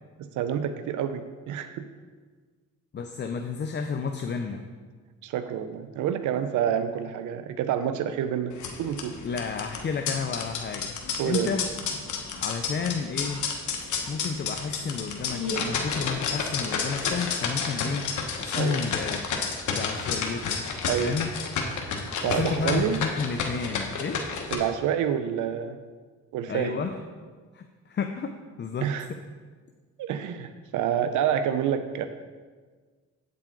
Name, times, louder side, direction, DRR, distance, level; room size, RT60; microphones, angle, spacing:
voice 1, 0.2-1.9 5.2-9.2 11.2-11.5 18.5-18.8 20.9-21.2 22.2-23.0 24.5-25.8 26.3-26.8 28.8-29.1 30.0-32.1, right 9 dB, 80° right, 10 dB, 0.6 m, -28 dB
voice 2, 2.9-4.7 9.2-10.9 11.2-11.7 12.4-13.5 14.1-18.1 18.4-19.4 19.7-20.6 21.0-21.3 22.2-24.3 26.5-27.0 27.5-28.9, left 5 dB, 35° left, 5 dB, 0.6 m, -31 dB
sound 1, 8.5-24.5, left 5 dB, 75° left, 1.2 m, -31 dB
8.7 x 7.5 x 3.8 m, 1.5 s
cardioid pair, 90°, 30 cm